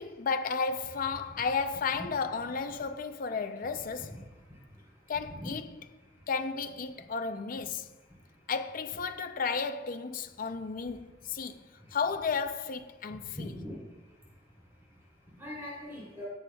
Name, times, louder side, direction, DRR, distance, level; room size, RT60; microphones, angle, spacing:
voice 1, 0.0-4.2 5.1-5.6 6.3-7.9 8.5-11.6 11.9-13.6, left 5 dB, 45° left, 0.5 m, -33 dB
voice 2, 3.4-6.3 7.0-7.1 7.6-8.5 10.8-10.9 11.4-12.0 13.0-16.3, left 1 dB, 15° right, 3.0 m, -46 dB
16.5 x 7.8 x 2.3 m
head